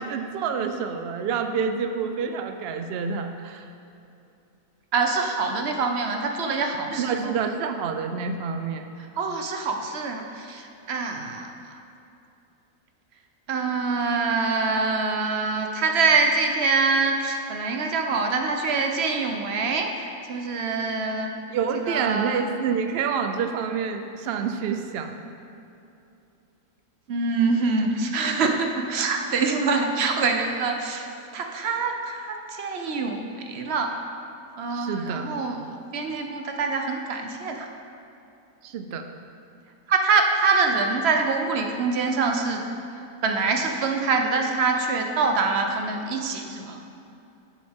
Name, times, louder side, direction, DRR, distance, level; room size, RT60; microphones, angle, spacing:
voice 1, 0.0-3.7 6.9-8.9 21.5-25.1 34.7-35.3 38.6-39.0, right 6 dB, 90° right, 6 dB, 0.5 m, -28 dB
voice 2, 4.9-7.3 9.2-11.8 13.5-21.3 21.7-22.4 27.1-31.1 31.3-33.9 34.6-37.7 39.9-42.6 43.2-46.9, right 4 dB, 50° right, 4 dB, 0.9 m, -25 dB
10.5 x 7.7 x 3.6 m, 2.7 s
omnidirectional pair, 1.7 m